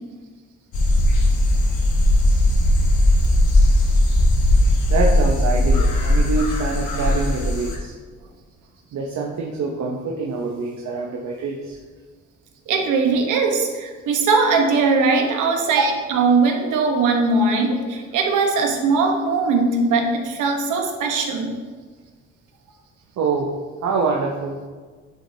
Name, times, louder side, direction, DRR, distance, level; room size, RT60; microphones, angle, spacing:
sound 1, 0.7-7.8, left 1 dB, 75° left, 1.6 m, -17 dB
voice 1, 4.9-8.0 8.9-11.8 23.2-24.6, right 4 dB, 65° right, 0 dB, 0.9 m, -25 dB
voice 2, 12.7-21.5, right 4 dB, 80° right, 2 dB, 1.2 m, -20 dB
10.5 x 4.7 x 2.8 m, 1.5 s
cardioid pair, 90°, 30 cm